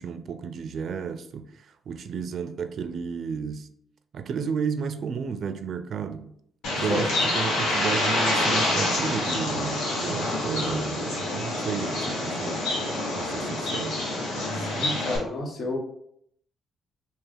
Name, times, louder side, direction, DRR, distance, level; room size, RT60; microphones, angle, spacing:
voice 1, 0.0-3.7 4.1-6.3 6.8-12.6 13.2-14.0, right 6 dB, 60° right, 0.4 m, -32 dB
Bird, 6.6-15.2, left 1 dB, 85° left, 1.1 m, -27 dB
voice 2, 14.5-15.8, left 2 dB, 55° left, 1.0 m, -30 dB
3.4 x 2.8 x 3.3 m
cardioid pair, 90°, 0 cm